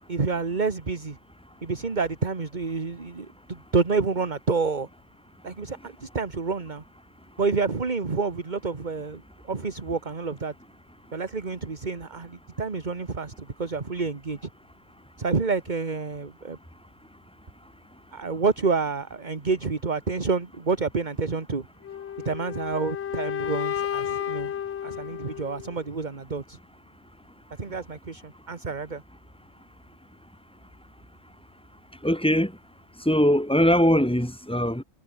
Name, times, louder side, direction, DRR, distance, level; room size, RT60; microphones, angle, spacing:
voice 1, 0.1-1.2 1.6-4.9 5.4-6.8 7.4-10.5 11.1-14.5 15.2-16.6 18.1-21.7 22.3-24.5 24.8-26.6 27.6-29.0, right 4 dB, 35° right, 1.8 m, -28 dB
sound 1, 21.8-25.9, left 9 dB, 60° left, 1.0 m, -32 dB
voice 2, 32.0-32.5 33.0-34.8, equal, 5° left, 2.9 m, -21 dB
omnidirectional pair, 1.4 m